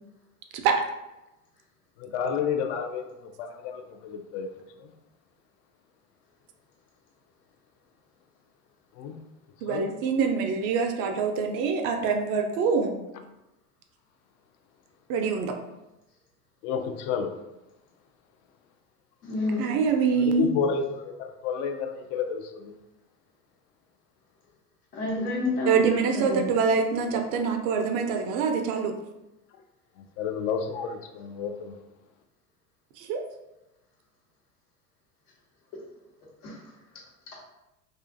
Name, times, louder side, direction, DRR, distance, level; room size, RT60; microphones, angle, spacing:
voice 1, 2.0-4.5 4.8-4.9 9.0-9.2 9.7-9.9 16.6-17.4 20.2-22.8 30.2-31.8, left 6 dB, 55° left, 6 dB, 0.5 m, -31 dB
voice 2, 9.6-13.0 15.1-15.6 19.6-20.5 25.7-28.9 33.0-33.2, right 5 dB, 50° right, 5 dB, 0.4 m, -25 dB
voice 3, 19.2-19.7 24.9-26.5 36.4-36.6, left 1 dB, 75° left, -4 dB, 1.1 m, -29 dB
2.4 x 2.4 x 2.5 m, 0.96 s
hypercardioid pair, 80°, 44 cm